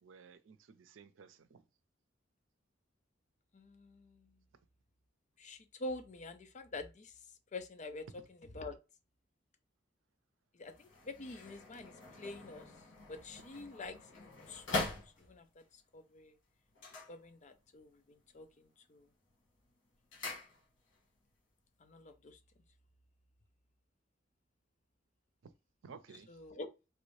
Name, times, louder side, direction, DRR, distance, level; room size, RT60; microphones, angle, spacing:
voice 1, 0.0-1.6 25.8-26.3, right 5 dB, 90° right, 0.5 m, -55 dB
voice 2, 3.5-4.3 5.4-7.1 7.5-8.8 10.5-12.7 13.1-15.6 15.9-16.4 17.1-19.1 21.8-22.4 26.3-26.7, left 2 dB, 40° left, 0.5 m, -47 dB
sound 1, 10.6-15.6 16.7-17.8 18.1-18.6 19.0-21.0 21.3-21.4, left 3 dB, 80° left, 1.5 m, -43 dB
3.1 x 2.6 x 3.1 m
head